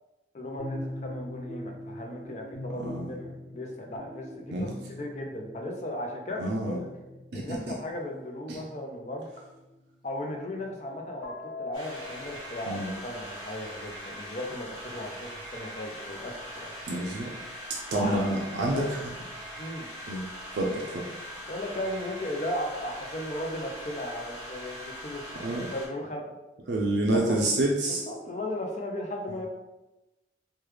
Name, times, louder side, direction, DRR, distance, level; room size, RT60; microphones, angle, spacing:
voice 1, 0.3-6.9 7.3-9.3 10.0-16.7 17.9-18.3 18.6-18.9 19.6-19.9 21.5-26.4 27.1-27.4 27.9-29.5, left 1 dB, 40° left, 2 dB, 0.4 m, -36 dB
sound 1, 0.6-9.7 10.6-12.4, left 1 dB, 15° right, 1.2 m, -42 dB
voice 2, 2.8-3.1 4.5-4.7 6.4-6.8 7.3-7.6 8.5-8.6 12.7-12.9 16.9-17.3 17.9-18.8 20.1-20.2 20.5-21.0 25.4-25.7 26.7-28.0, right 1 dB, 75° right, -2 dB, 0.4 m, -28 dB
sound 2, 11.7-25.9, equal, 20° left, 1.3 m, -41 dB
3.2 x 2.2 x 3.2 m, 1.0 s
head